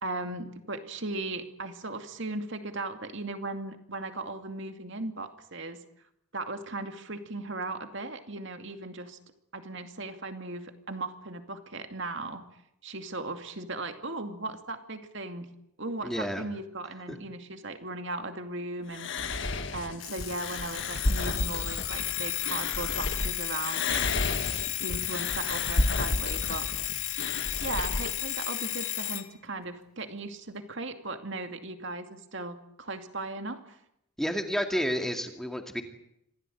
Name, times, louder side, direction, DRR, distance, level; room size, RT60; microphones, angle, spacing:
voice 1, 0.0-5.8 6.3-9.2 9.5-12.4 12.8-15.5 15.8-19.1 19.7-24.1 24.8-26.7 27.6-33.8, right 2 dB, 55° right, 6 dB, 2.5 m, -37 dB
voice 2, 16.0-16.4 17.1-17.2 34.2-35.8, equal, ahead, 4 dB, 2.3 m, -30 dB
sound 1, 18.9-23.3 23.6-28.1, left 2 dB, 55° left, 1.7 m, -32 dB
Alarm, 20.0-29.3, left 14 dB, 70° left, 2.0 m, -33 dB
26.5 x 17.0 x 9.3 m, 0.79 s
head